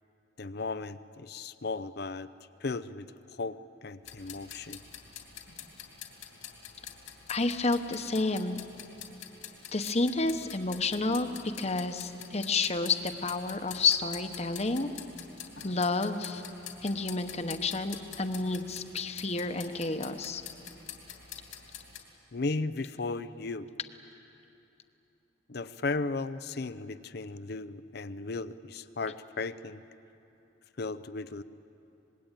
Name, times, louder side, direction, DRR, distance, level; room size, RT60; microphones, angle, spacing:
voice 1, 0.4-2.3 2.6-3.1 3.4-3.6 3.8-4.8 22.3-23.7 25.5-29.8 30.8-31.4, left 3 dB, 55° left, 14 dB, 0.6 m, -35 dB
sound 1, 4.0-22.0, left 8 dB, 80° left, 3.0 m, -47 dB
voice 2, 7.3-8.6 9.7-11.3 11.6-14.9 15.6-16.4 16.8-20.4, left 3 dB, 35° left, 8 dB, 1.0 m, -30 dB
25.5 x 21.0 x 9.1 m, 2.9 s
head